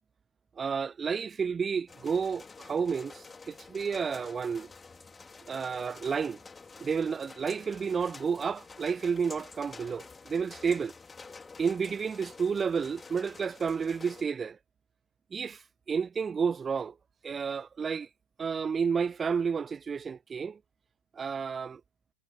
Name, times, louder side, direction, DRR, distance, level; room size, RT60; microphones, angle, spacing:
voice 1, 0.6-4.7 5.5-6.4 6.8-10.9 11.6-14.6 15.3-16.9 17.2-18.1 18.4-20.6 21.1-21.8, right 6 dB, 20° right, 0.3 m, -31 dB
sound 1, 1.9-14.2, left 4 dB, 15° left, 2.3 m, -49 dB
figure-of-eight pair, 90°, 0 cm